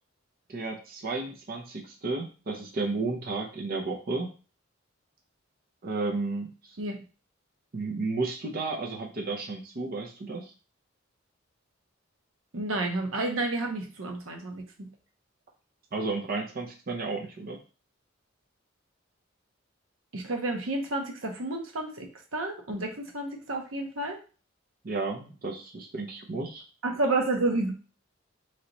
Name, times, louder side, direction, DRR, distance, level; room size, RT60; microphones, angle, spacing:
voice 1, 0.5-4.3 5.8-6.5 7.7-10.5 15.9-17.6 24.8-26.6, right 3 dB, 50° right, 1 dB, 0.6 m, -32 dB
voice 2, 12.5-14.9 20.1-24.2 26.8-27.7, right 2 dB, 90° right, 3 dB, 0.9 m, -30 dB
3.2 x 2.9 x 3.9 m, 0.35 s
head